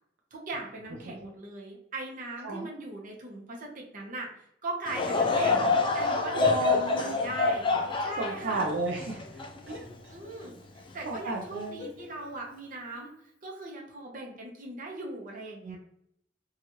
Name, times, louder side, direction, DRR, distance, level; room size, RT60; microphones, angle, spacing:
voice 1, 0.3-4.3 4.6-7.7 8.0-8.7 10.1-13.1 13.4-15.8, right 2 dB, 50° right, -1 dB, 0.8 m, -39 dB
Laughter / Crowd, 4.9-10.3 10.9-11.0 11.8-12.0, left 4 dB, 30° left, 0.4 m, -27 dB
voice 2, 6.3-7.2 8.2-9.2 9.7-9.8 11.1-11.8 15.6-15.8, right 2 dB, 75° right, 0 dB, 0.5 m, -32 dB
3.0 x 2.4 x 2.8 m, 0.73 s
head